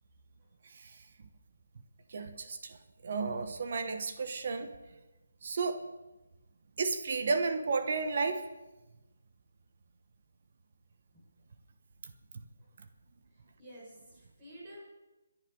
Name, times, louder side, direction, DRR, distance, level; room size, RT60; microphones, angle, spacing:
voice 1, 2.1-2.8 3.0-4.7 5.4-5.8 6.8-8.5, right 4 dB, 45° right, 8 dB, 1.1 m, -32 dB
voice 2, 13.6-14.8, equal, 20° right, -5 dB, 5.8 m, -50 dB
24.0 x 11.0 x 3.8 m, 1.1 s
hypercardioid pair, 170°, 0 cm